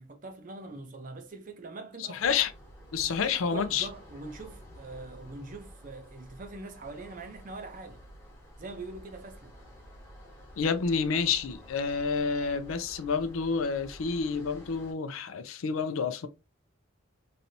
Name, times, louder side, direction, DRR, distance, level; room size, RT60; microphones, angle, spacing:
voice 1, 0.0-2.4 3.1-8.0 8.6-9.5, right 3 dB, 40° right, 0.6 m, -43 dB
voice 2, 2.1-2.5 2.9-3.9 10.6-16.3, left 5 dB, 75° left, 0.5 m, -29 dB
sound 1, 2.2-14.9, equal, 15° left, 0.9 m, -50 dB
3.2 x 2.7 x 2.6 m
head